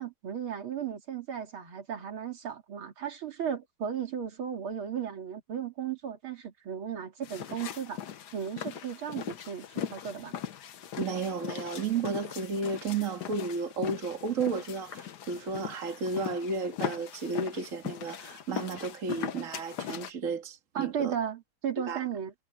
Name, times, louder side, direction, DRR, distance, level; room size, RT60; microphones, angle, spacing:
voice 1, 0.0-8.0 8.3-10.3 20.7-22.3, right 8 dB, 75° right, 3.2 m, -35 dB
sound 1, 7.2-20.1, left 9 dB, 60° left, 1.4 m, -39 dB
voice 2, 11.0-21.2 21.8-22.0, right 4 dB, 40° right, 2.2 m, -33 dB
omnidirectional pair, 2.3 m